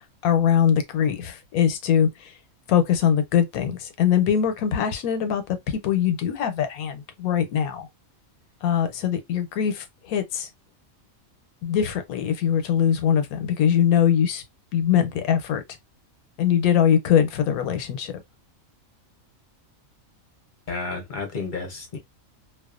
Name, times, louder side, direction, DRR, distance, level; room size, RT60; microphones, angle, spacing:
voice 1, 0.2-2.1 2.7-7.9 8.6-10.5 11.6-14.4 14.7-15.6 16.4-18.1, left 9 dB, 90° left, 1.1 m, -22 dB
voice 2, 20.7-22.0, left 4 dB, 45° left, 0.7 m, -31 dB
2.4 x 2.3 x 2.4 m
omnidirectional pair, 1.5 m